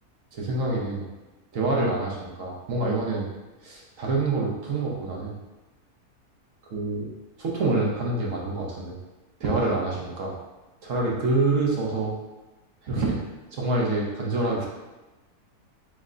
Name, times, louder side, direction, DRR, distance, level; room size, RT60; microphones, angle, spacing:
voice 1, 0.3-1.1 1.5-3.3 3.6-5.4 6.7-7.1 7.4-9.0 9.4-10.3 10.8-12.2 12.8-13.2 13.5-14.7, right 2 dB, 60° right, -3 dB, 1.0 m, -26 dB
3.3 x 3.2 x 3.7 m, 1.1 s
omnidirectional pair, 1.6 m